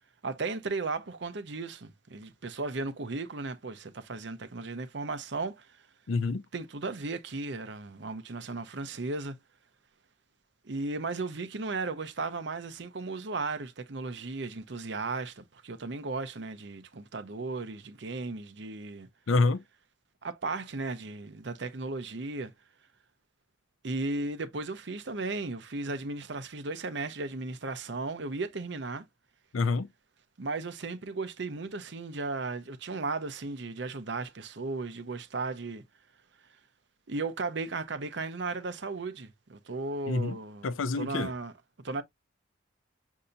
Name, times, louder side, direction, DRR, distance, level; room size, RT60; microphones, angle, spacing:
voice 1, 0.2-5.8 6.5-9.4 10.6-19.1 20.2-22.5 23.8-29.0 30.4-35.8 37.1-40.7 40.9-41.5 41.8-42.0, right 3 dB, 60° right, 0.7 m, -35 dB
voice 2, 6.1-6.4 19.3-19.6 29.5-29.9 40.1-40.4 40.6-41.3, left 3 dB, 85° left, 0.5 m, -27 dB
6.7 x 2.8 x 2.6 m
head